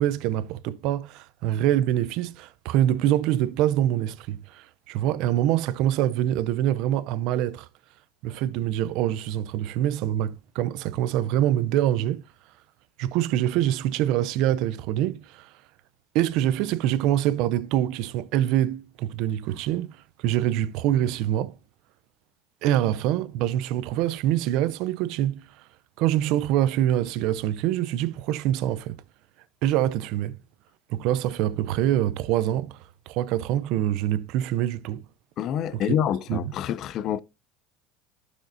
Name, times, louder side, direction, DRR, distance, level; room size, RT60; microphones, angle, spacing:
voice 1, 0.0-7.7 8.2-12.2 13.0-15.5 16.1-20.0 20.2-21.6 22.6-25.4 26.0-29.0 29.6-30.4 30.9-32.8 33.1-35.0 35.7-35.8 36.3-36.5, right 12 dB, 65° right, 0.6 m, -25 dB
voice 2, 35.4-37.2, left 9 dB, 50° left, 0.5 m, -27 dB
11.5 x 6.4 x 2.7 m
supercardioid pair, 115°, 0 cm